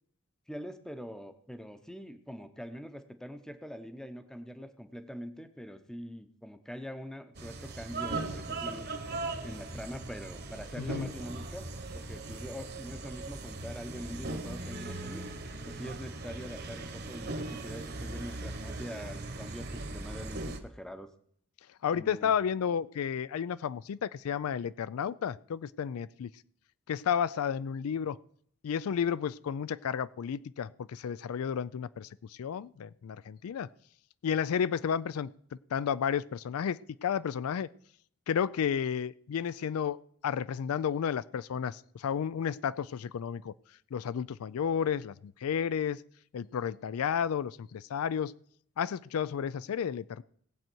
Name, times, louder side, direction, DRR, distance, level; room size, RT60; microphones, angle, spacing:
voice 1, 0.5-8.9 9.4-11.7 11.9-15.2 15.7-21.1 21.9-22.3, equal, 5° left, 9 dB, 0.7 m, -43 dB
sound 1, 7.3-20.6, right 2 dB, 50° right, 1.2 m, -39 dB
voice 2, 10.8-11.1 21.8-26.3 26.9-28.2 28.6-33.7 34.2-35.3 35.7-37.7 38.3-43.5 43.9-46.0 46.3-48.3 48.8-50.2, left 7 dB, 85° left, 18 dB, 0.4 m, -32 dB
19.0 x 7.7 x 4.5 m, 0.66 s
head